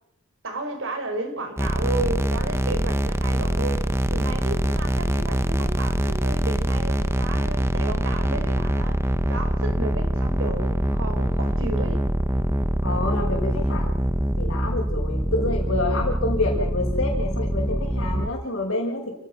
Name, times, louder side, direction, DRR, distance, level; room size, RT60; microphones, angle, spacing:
voice 1, 0.4-9.0 9.3-12.0, right 2 dB, 65° right, 6 dB, 5.1 m, -33 dB
sound 1, 1.6-18.3, right 1 dB, 10° right, 1.2 m, -24 dB
voice 2, 12.8-13.9 14.3-19.1, left 2 dB, 60° left, -4 dB, 5.8 m, -28 dB
28.5 x 18.5 x 6.1 m, 0.77 s
head